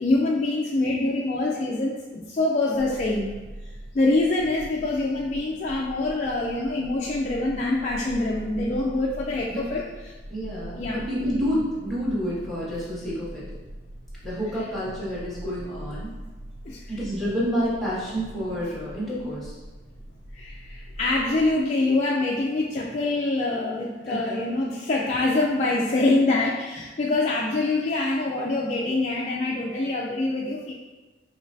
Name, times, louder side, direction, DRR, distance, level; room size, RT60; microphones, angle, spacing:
voice 1, 0.0-3.3 3.9-9.8 10.8-11.0 16.6-16.8 20.3-30.7, left 2 dB, 40° left, -4 dB, 0.4 m, -25 dB
sound 1, 2.7-21.6, equal, 70° right, 0.5 m, -42 dB
voice 2, 10.3-13.4 14.2-16.1 16.9-19.6 24.1-24.4, equal, ahead, -9 dB, 1.5 m, -29 dB
5.0 x 3.3 x 2.6 m, 1.2 s
head